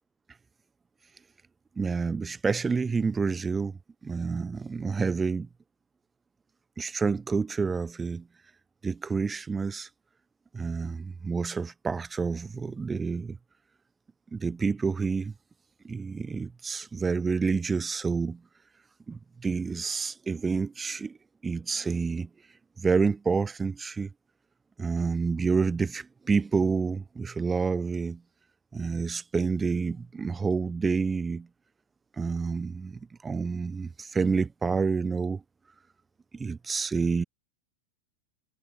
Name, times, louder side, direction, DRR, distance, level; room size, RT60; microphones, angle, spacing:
voice 1, 1.8-3.8 4.0-5.5 6.8-8.2 8.8-9.9 10.5-13.4 14.3-15.3 15.8-18.4 19.1-21.2 21.4-22.3 22.8-24.1 24.8-28.2 28.7-31.5 32.2-35.4 36.3-37.2, right 5 dB, 15° right, 0.9 m, -28 dB
figure-of-eight pair, 90°, 0 cm